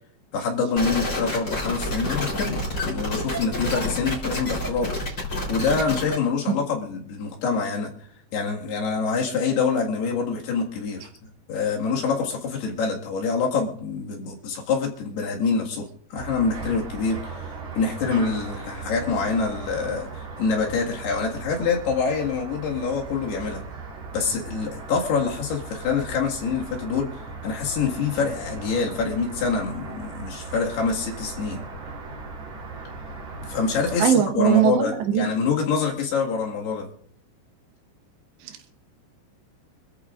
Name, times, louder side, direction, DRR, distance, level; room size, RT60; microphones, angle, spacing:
voice 1, 0.3-4.9 5.5-7.9 8.3-11.1 11.5-23.6 24.1-27.1 27.4-31.6 33.5-36.9, left 5 dB, 70° left, -1 dB, 3.8 m, -26 dB
sound 1, 0.8-6.2, left 1 dB, 25° left, 3.8 m, -28 dB
sound 2, 16.2-34.0, right 4 dB, 60° right, 5.2 m, -38 dB
voice 2, 34.0-35.2 38.4-38.7, right 9 dB, 80° right, 6 dB, 3.4 m, -21 dB
26.0 x 13.5 x 2.5 m, 0.63 s
omnidirectional pair, 5.0 m